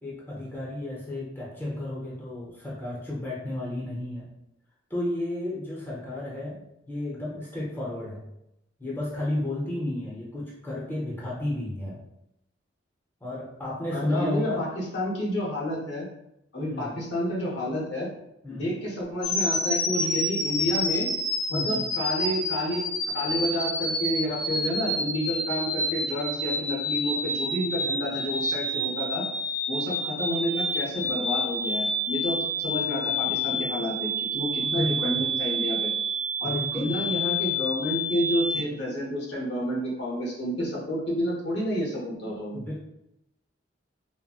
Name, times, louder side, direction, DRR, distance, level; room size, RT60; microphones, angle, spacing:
voice 1, 0.0-4.3 4.9-6.6 6.9-8.2 8.8-12.0 13.2-14.6 16.7-17.0 18.4-18.8 21.5-21.8 34.6-35.2 36.4-37.0 42.5-42.8, left 1 dB, 10° left, -6 dB, 0.7 m, -32 dB
voice 2, 13.9-16.0 16.5-18.1 18.6-21.1 21.5-22.8 23.1-29.2 29.7-35.9 36.4-42.6, equal, 60° left, -4 dB, 0.9 m, -30 dB
sound 1, 19.2-38.6, equal, 80° left, 1.2 m, -29 dB
4.0 x 2.1 x 2.3 m, 0.84 s
head